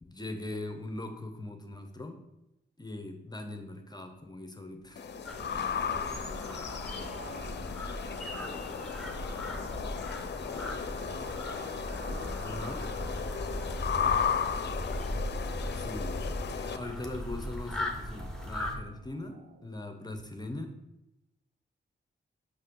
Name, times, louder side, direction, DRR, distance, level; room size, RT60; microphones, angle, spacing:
voice 1, 0.0-2.2 2.8-5.1 12.4-12.9 15.7-16.1 16.5-20.8, left 2 dB, 20° left, 5 dB, 0.8 m, -41 dB
sound 1, 4.8-19.7, right 3 dB, 65° right, 0.8 m, -52 dB
sound 2, 5.0-16.8, left 7 dB, 65° left, 0.5 m, -35 dB
sound 3, 5.3-18.8, left 1 dB, 5° left, 1.2 m, -38 dB
voice 2, 5.9-7.6 7.9-10.7 11.1-13.1 13.4-14.8, right 1 dB, 85° right, -4 dB, 2.6 m, -52 dB
6.4 x 5.9 x 3.8 m, 0.91 s
cardioid pair, 80°, 19 cm